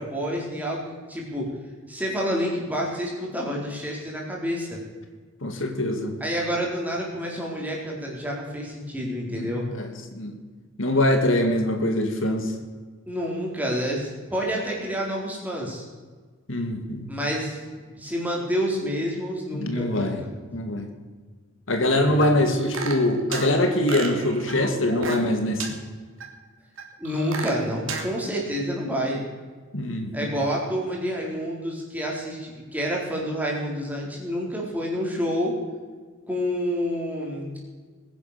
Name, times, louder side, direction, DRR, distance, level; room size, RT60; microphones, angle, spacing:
voice 1, 0.0-1.5 1.9-4.8 6.2-9.7 13.1-15.9 17.1-17.6 18.0-20.3 22.1-22.2 27.0-29.2 30.1-35.5 36.3-37.5, equal, 10° right, -3 dB, 4.1 m, -28 dB
voice 2, 5.4-6.1 9.3-10.3 10.8-12.5 16.5-17.1 19.5-20.2 20.5-20.9 21.7-25.7 29.7-30.3, left 1 dB, 70° left, 5 dB, 2.2 m, -23 dB
sound 1, 22.2-23.5 23.9-25.3 25.6-25.7 26.2-26.3 26.8-28.1, right 4 dB, 70° right, 3.0 m, -32 dB
21.0 x 10.5 x 6.7 m, 1.4 s
head